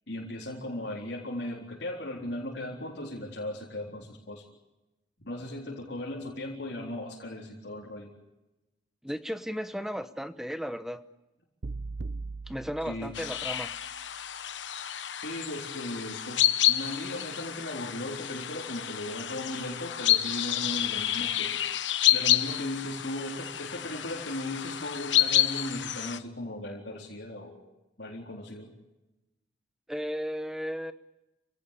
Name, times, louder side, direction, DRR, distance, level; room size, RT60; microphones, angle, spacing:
voice 1, 0.1-4.4 5.2-8.1 12.8-13.1 15.2-21.6 22.1-27.6 28.0-28.7, left 1 dB, 70° left, -3 dB, 4.0 m, -37 dB
voice 2, 9.0-11.0 12.5-13.7 29.9-30.9, equal, ahead, 11 dB, 0.9 m, -35 dB
sound 1, 11.6-13.9, right 3 dB, 65° right, 0.7 m, -39 dB
sound 2, 13.1-26.2, left 12 dB, 85° left, 1.1 m, -29 dB
27.5 x 17.0 x 8.5 m, 1.0 s
head